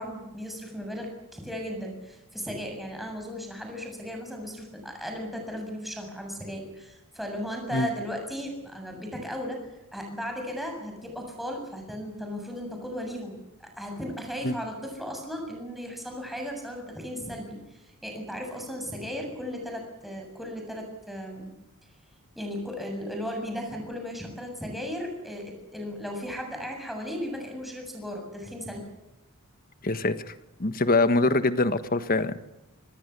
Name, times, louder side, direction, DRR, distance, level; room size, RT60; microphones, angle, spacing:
voice 1, 0.0-9.6 9.9-13.4 13.8-17.6 18.0-21.5 22.4-28.9, equal, ahead, 2 dB, 7.4 m, -36 dB
voice 2, 29.8-30.3 30.6-32.4, left 2 dB, 40° left, 11 dB, 1.5 m, -24 dB
26.5 x 20.0 x 8.3 m, 0.94 s
head